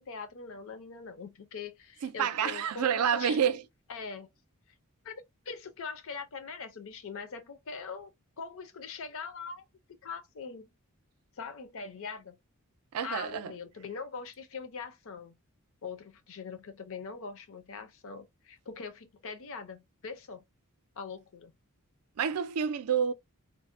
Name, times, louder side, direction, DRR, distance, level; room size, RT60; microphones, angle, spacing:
voice 1, 0.0-3.4 3.9-4.3 5.0-8.1 8.4-9.6 10.0-10.7 11.4-12.4 13.0-15.4 15.8-20.4 21.0-21.5, left 5 dB, 65° left, 0.6 m, -42 dB
voice 2, 2.0-3.6 12.9-13.5 22.2-23.1, right 8 dB, 75° right, 0.4 m, -28 dB
2.6 x 2.1 x 2.5 m
head